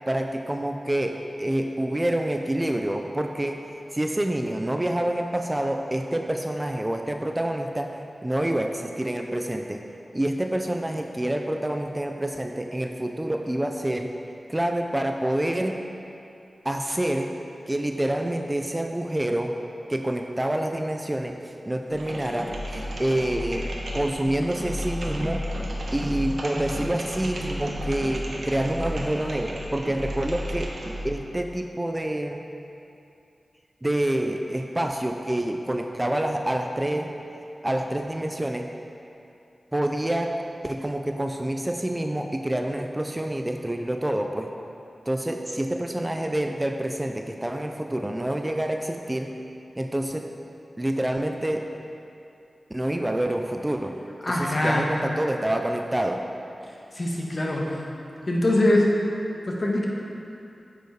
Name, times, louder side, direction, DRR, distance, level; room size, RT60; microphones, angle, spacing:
voice 1, 0.1-9.8 10.1-14.1 14.5-15.8 16.6-17.3 17.7-19.6 19.9-25.4 25.9-30.7 31.0-32.4 33.8-37.1 37.6-38.7 39.7-40.4 40.6-44.5 45.1-49.3 49.8-50.3 50.8-51.7 52.7-54.0 54.3-56.2, right 1 dB, 20° right, 4 dB, 0.4 m, -27 dB
sound 1, 21.9-31.2, equal, 75° right, 1.1 m, -33 dB
voice 2, 54.2-54.8 56.9-57.6 58.3-58.9 59.4-59.9, left 1 dB, 45° left, -3 dB, 1.3 m, -22 dB
9.2 x 5.0 x 4.6 m, 2.7 s
wide cardioid pair, 75°, 0 cm